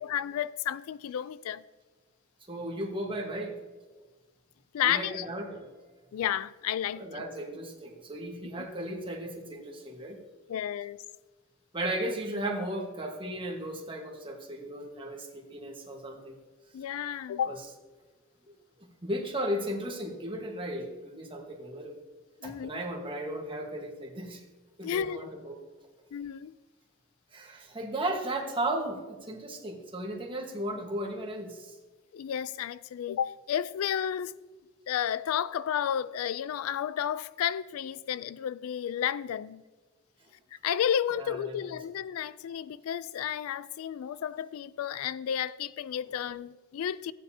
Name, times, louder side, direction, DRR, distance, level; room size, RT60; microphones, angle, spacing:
voice 1, 0.0-1.6 4.7-5.3 6.1-7.0 10.5-11.0 16.7-17.6 22.4-22.7 24.8-25.3 26.1-26.5 32.1-34.3 34.9-39.6 40.6-47.1, left 9 dB, 70° left, 0.3 m, -32 dB
voice 2, 2.5-3.6 4.8-5.7 6.8-10.2 11.7-16.4 17.4-17.6 18.4-18.5 18.8-22.0 22.4-24.4 24.8-25.6 27.3-31.7 41.1-41.8, right 1 dB, 25° right, 1.4 m, -35 dB
15.0 x 9.0 x 2.8 m
head